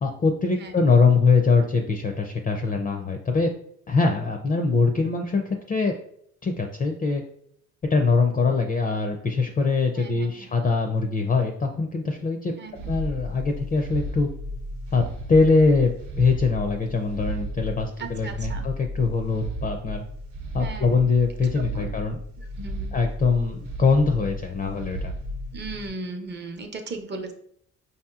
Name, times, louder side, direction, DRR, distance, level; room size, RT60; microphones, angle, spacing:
voice 1, 0.0-3.5 3.9-5.4 5.7-5.9 6.4-7.2 7.9-12.5 12.9-14.3 14.9-15.0 15.3-20.0 20.5-22.2 22.9-25.1, left 4 dB, 30° left, 4 dB, 0.4 m, -22 dB
voice 2, 10.0-10.5 12.6-12.9 18.0-18.7 20.6-21.1 21.6-22.0 22.6-23.0 25.5-27.3, right 3 dB, 35° right, 5 dB, 0.7 m, -37 dB
sound 1, 12.8-25.9, right 1 dB, 80° right, 0.9 m, -34 dB
5.0 x 2.8 x 2.3 m, 0.68 s
cardioid pair, 90°, 30 cm